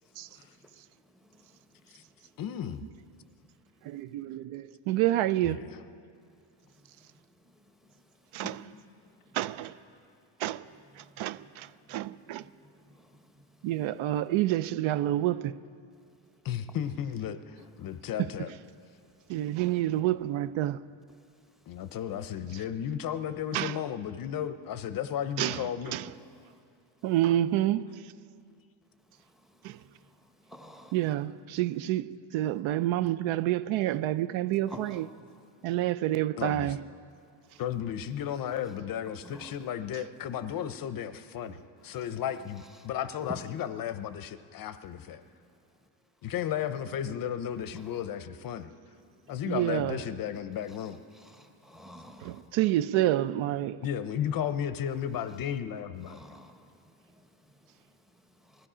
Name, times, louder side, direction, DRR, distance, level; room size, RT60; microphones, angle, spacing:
voice 1, 0.2-2.4 3.7-4.0 6.3-9.4 9.9-10.2 10.8-14.3 16.0-16.8 17.6-18.0 18.9-19.6 21.1-22.0 26.2-26.6 27.0-27.1 28.9-31.1 34.7-35.7 37.2-37.6 39.2-39.7 41.9-42.1 42.5-42.9 43.3-43.5 45.2-45.9 47.7-48.0 49.1-49.5 50.7-50.8 51.1-52.5 56.0-58.7, equal, ahead, 0.8 m, -53 dB
voice 2, 2.4-2.8 5.4-5.8 16.4-17.4 17.8-18.5 21.7-26.0 36.4-36.7 37.6-45.2 46.2-48.7 49.3-51.0 53.8-56.2, left 9 dB, 45° left, 0.6 m, -34 dB
voice 3, 3.8-5.6 8.3-8.5 9.3-9.7 10.4-10.6 11.0-12.4 13.6-15.6 19.3-20.8 23.5-23.8 25.4-26.1 27.0-27.9 29.6-29.8 30.9-35.0 35.6-36.8 49.5-50.0 52.2-53.8, right 14 dB, 75° right, 0.6 m, -28 dB
20.5 x 14.0 x 4.9 m
cardioid pair, 155°, 48 cm